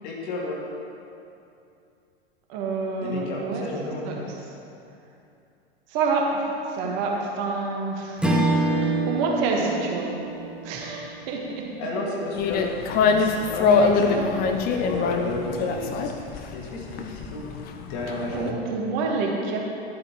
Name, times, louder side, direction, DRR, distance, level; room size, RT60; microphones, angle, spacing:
voice 1, 0.0-0.6 3.0-4.2 11.8-12.7 13.1-14.1 14.7-16.3 16.5-17.5 17.9-18.5, left 2 dB, 50° left, -3 dB, 2.2 m, -32 dB
voice 2, 2.5-3.6 4.0-4.1 5.9-6.3 6.7-8.2 8.8-10.1 10.6-11.6 13.6-14.3 18.3-19.6, right 4 dB, 45° right, 0 dB, 1.6 m, -27 dB
Strum, 8.2-12.8, right 2 dB, 5° right, 0.9 m, -27 dB
sound 1, 12.3-18.5, left 5 dB, 30° left, 0.7 m, -24 dB
11.5 x 8.4 x 3.1 m, 2.6 s
figure-of-eight pair, 95°, 32 cm